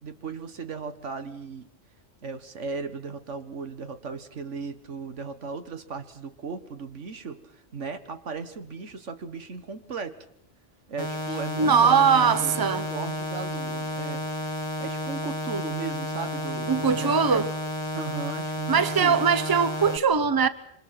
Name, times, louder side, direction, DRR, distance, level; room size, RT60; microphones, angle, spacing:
voice 1, 0.0-1.7 2.2-10.2 10.9-17.4 17.9-19.2, right 5 dB, 85° right, 1.9 m, -36 dB
sound 1, 11.0-20.0, equal, 25° left, 1.1 m, -32 dB
voice 2, 11.6-12.9 16.7-17.5 18.7-20.5, right 6 dB, 20° right, 0.9 m, -21 dB
27.0 x 25.0 x 6.0 m
omnidirectional pair, 1.2 m